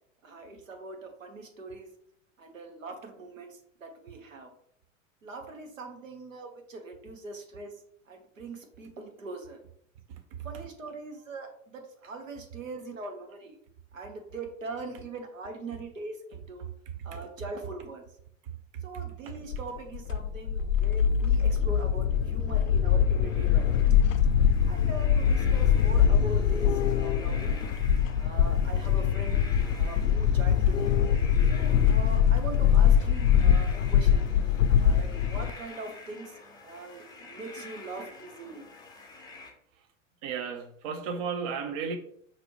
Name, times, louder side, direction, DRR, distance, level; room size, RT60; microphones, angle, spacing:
voice 1, 0.2-1.9 2.4-4.5 5.2-7.7 8.1-9.6 10.4-13.5 13.9-16.7 17.0-18.0 18.8-23.7 24.7-27.5 28.2-29.4 29.8-30.9 31.5-34.3 34.8-38.6, right 2 dB, 70° right, 1.1 m, -41 dB
sound 1, 19.5-35.5, left 8 dB, 70° left, 0.5 m, -23 dB
sound 2, 22.9-39.5, left 3 dB, 10° left, 0.6 m, -48 dB
voice 2, 40.2-42.0, right 6 dB, 30° right, 0.3 m, -33 dB
5.9 x 2.6 x 3.1 m
figure-of-eight pair, 90°, 40 cm